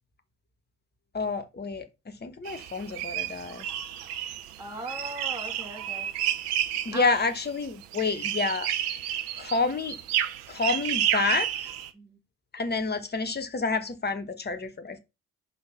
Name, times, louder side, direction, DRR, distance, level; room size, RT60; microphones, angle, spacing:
voice 1, 1.1-3.7 6.8-8.7 9.3-10.0 10.5-11.7 12.5-15.0, left 4 dB, 20° left, 1.4 m, -29 dB
sound 1, 2.4-11.9, right 11 dB, 80° right, 0.8 m, -31 dB
voice 2, 4.6-6.1 6.9-7.2 11.9-12.2, right 1 dB, 5° right, 2.7 m, -38 dB
5.5 x 4.0 x 5.7 m
hypercardioid pair, 55°, 45 cm